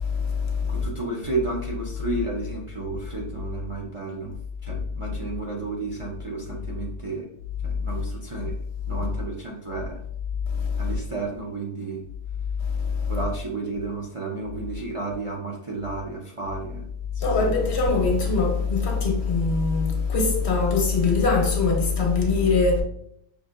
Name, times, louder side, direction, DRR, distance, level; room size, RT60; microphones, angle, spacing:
voice 1, 0.0-0.8 10.5-10.9 12.7-13.1 17.2-22.8, left 4 dB, 60° left, 1.0 m, -22 dB
voice 2, 0.7-7.3 7.6-8.6 8.9-10.0 10.8-12.0 13.1-17.5, right 3 dB, 40° right, 0.4 m, -32 dB
5.4 x 2.6 x 2.4 m
omnidirectional pair, 1.3 m